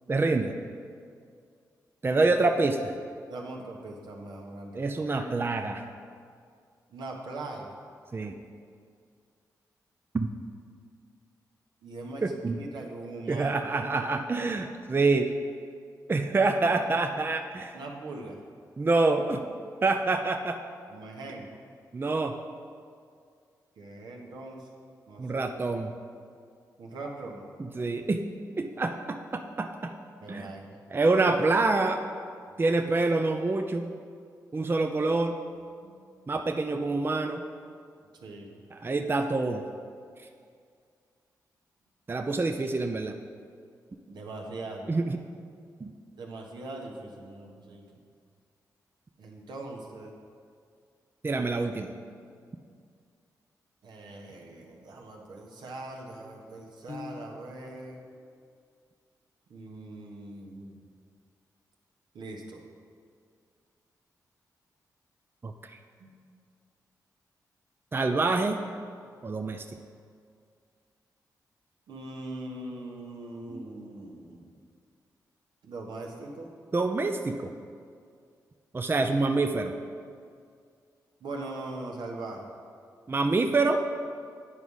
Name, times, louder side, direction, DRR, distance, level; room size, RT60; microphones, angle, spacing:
voice 1, 0.1-0.5 2.0-2.9 4.7-5.8 8.1-8.4 10.1-10.3 12.2-12.6 13.3-15.3 16.1-17.8 18.8-19.4 19.8-20.6 21.9-22.4 25.2-25.9 27.6-28.3 28.6-29.9 30.3-30.5 30.9-32.1 32.6-33.9 34.5-35.4 36.3-37.4 38.7-39.7 42.1-43.2 44.9-45.2 45.8-45.9 51.2-51.9 65.4-65.5 67.9-68.6 69.2-69.6 73.5-73.6 76.7-77.5 78.7-79.7 83.1-83.8, right 3 dB, 30° right, 6 dB, 0.5 m, -26 dB
voice 2, 3.3-4.9 6.9-7.8 11.8-13.7 17.7-18.4 20.9-21.5 23.8-24.7 25.1-25.9 26.8-27.5 30.2-30.8 35.8-36.0 38.2-38.6 44.1-44.9 46.2-47.8 49.2-50.2 53.8-58.0 59.5-60.8 62.1-62.6 66.0-66.1 71.9-74.5 75.6-76.5 81.2-82.5, right 2 dB, 80° right, 0 dB, 1.2 m, -41 dB
Piano, 56.9-57.9, left 3 dB, 35° left, 0.5 m, -43 dB
9.7 x 4.9 x 5.5 m, 2.2 s
cardioid pair, 60°, 7 cm